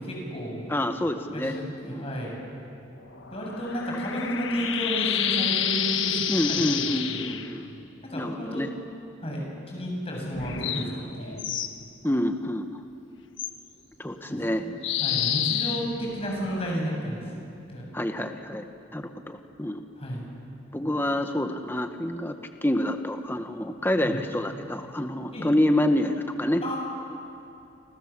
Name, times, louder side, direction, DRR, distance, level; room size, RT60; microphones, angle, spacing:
voice 1, 0.0-0.7 1.3-2.3 3.3-6.8 7.1-7.4 8.0-8.6 9.2-11.4 14.3-14.6 15.0-17.2 17.7-17.9 20.0-20.2 24.0-24.2 25.3-25.5 26.6-26.8, equal, 30° left, -1 dB, 7.7 m, -32 dB
voice 2, 0.7-1.6 1.8-2.0 6.3-7.7 8.1-8.7 12.0-12.8 14.0-14.6 17.9-18.6 18.9-19.8 20.7-22.3 22.6-26.6, left 1 dB, 10° left, 6 dB, 1.0 m, -27 dB
sound 1, 3.0-7.5 10.3-11.7 13.4-13.5 14.8-16.8, left 9 dB, 80° left, 1.4 m, -29 dB
28.5 x 26.5 x 7.4 m, 2.7 s
head